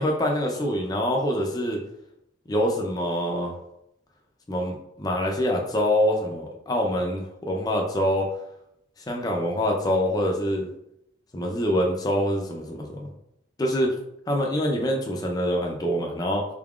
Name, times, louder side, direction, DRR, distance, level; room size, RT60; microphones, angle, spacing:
voice 1, 0.0-1.8 2.5-3.5 4.5-8.3 9.1-10.7 11.3-13.1 13.6-13.9 14.3-16.5, equal, 20° left, 0 dB, 0.4 m, -25 dB
3.9 x 3.5 x 2.4 m, 0.80 s
head